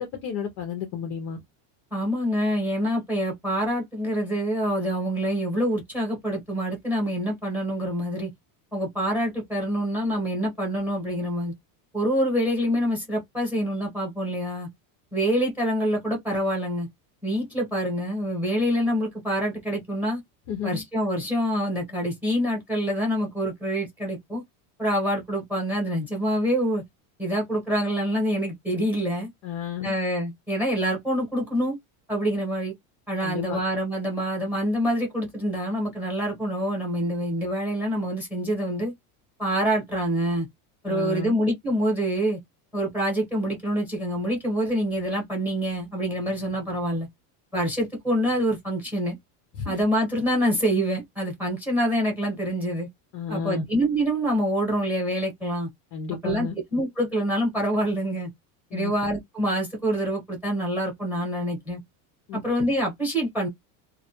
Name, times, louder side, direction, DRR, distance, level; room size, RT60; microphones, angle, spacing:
voice 1, 0.0-1.4 20.5-20.8 29.4-29.9 33.2-33.6 40.9-41.4 49.6-49.7 53.1-53.6 55.9-56.6 58.7-58.9 62.3-62.4, left 7 dB, 30° left, 0.4 m, -32 dB
voice 2, 1.9-8.3 8.7-11.5 11.9-14.7 15.1-16.9 17.2-20.2 20.6-24.4 24.8-26.8 27.2-29.3 29.8-31.8 32.1-32.7 33.1-38.9 39.4-40.5 40.8-42.4 42.7-47.1 47.5-49.2 49.7-52.9 53.3-55.7 56.2-58.3 58.7-61.8 62.3-63.5, equal, 5° right, 0.8 m, -26 dB
2.2 x 2.0 x 2.7 m
cardioid pair, 170°, 47 cm